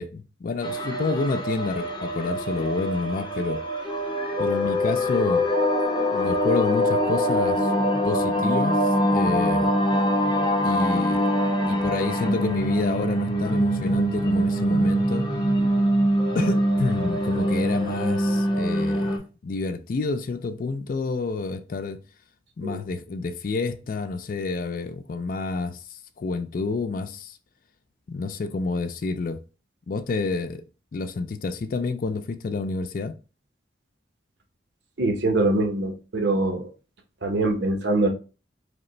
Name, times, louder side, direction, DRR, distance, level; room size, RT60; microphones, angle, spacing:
voice 1, 0.0-3.6 4.4-5.4 6.1-9.7 10.6-11.2 11.7-15.3 16.3-22.0 22.6-27.4 28.1-29.4 29.9-30.6 30.9-33.1, left 3 dB, 45° left, 0.3 m, -29 dB
sound 1, 0.6-19.2, equal, 25° left, 0.7 m, -24 dB
voice 2, 35.0-36.7 37.2-38.1, right 2 dB, 65° right, 0.8 m, -23 dB
4.9 x 2.1 x 3.0 m
head